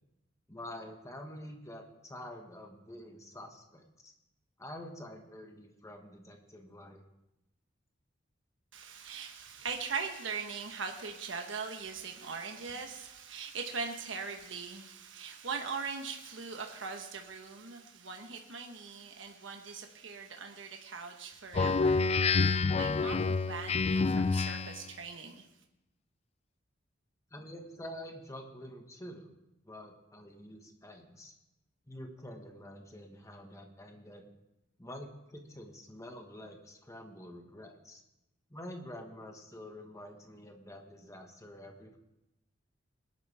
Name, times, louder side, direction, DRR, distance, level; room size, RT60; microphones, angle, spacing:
voice 1, 0.5-4.1 4.6-7.0 27.3-29.3 29.6-31.3 31.9-34.3 34.8-38.0 38.5-42.0, left 1 dB, 15° left, 3 dB, 1.4 m, -47 dB
voice 2, 8.7-25.5, right 5 dB, 70° right, 3 dB, 1.2 m, -41 dB
Speech synthesizer, 21.5-24.9, left 4 dB, 30° left, 0.3 m, -28 dB
20.0 x 11.0 x 3.5 m, 0.91 s
head